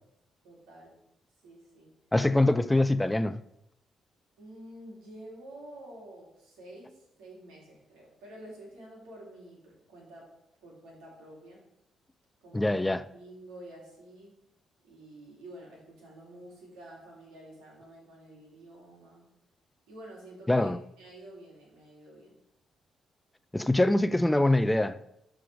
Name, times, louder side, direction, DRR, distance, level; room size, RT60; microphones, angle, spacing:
voice 1, 0.4-0.9 1.4-1.9 4.4-10.3 10.6-11.6 12.4-12.8 13.1-14.3 14.8-19.3 19.9-20.7 21.0-22.4, right 1 dB, 75° right, 3.3 m, -49 dB
voice 2, 2.1-3.4 12.5-13.0 20.5-20.8 23.5-25.0, left 1 dB, 15° left, 0.5 m, -24 dB
12.5 x 4.9 x 5.1 m
hypercardioid pair, 40°, 0 cm